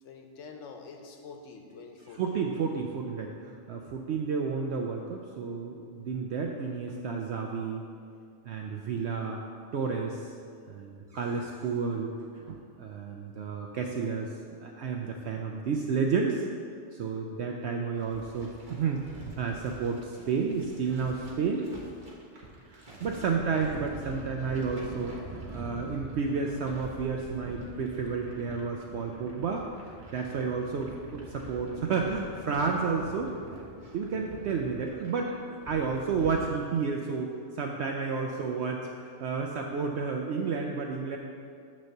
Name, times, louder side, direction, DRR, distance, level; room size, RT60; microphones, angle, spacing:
voice 1, 0.0-2.4 6.6-7.0 23.0-23.3, left 4 dB, 75° left, 4 dB, 1.1 m, -47 dB
voice 2, 2.1-7.8 8.4-9.4 9.7-10.3 10.7-14.3 14.6-16.5 16.9-21.7 22.7-25.2 25.5-29.7 30.1-33.3 33.9-41.2, right 5 dB, 65° right, 1 dB, 0.8 m, -31 dB
sound 1, 18.0-36.5, right 2 dB, 40° right, 1.2 m, -46 dB
9.0 x 3.2 x 6.6 m, 2.4 s
omnidirectional pair, 1.3 m